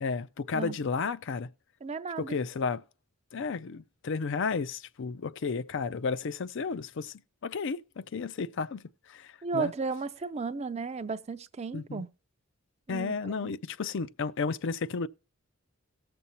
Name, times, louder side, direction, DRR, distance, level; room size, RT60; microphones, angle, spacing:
voice 1, 0.0-1.5 2.2-2.8 3.3-8.8 9.1-9.7 11.7-12.1 12.9-15.1, left 4 dB, 60° left, 0.5 m, -33 dB
voice 2, 1.8-2.4 9.4-12.1 12.9-13.5, right 4 dB, 30° right, 0.4 m, -34 dB
19.0 x 6.9 x 2.9 m
head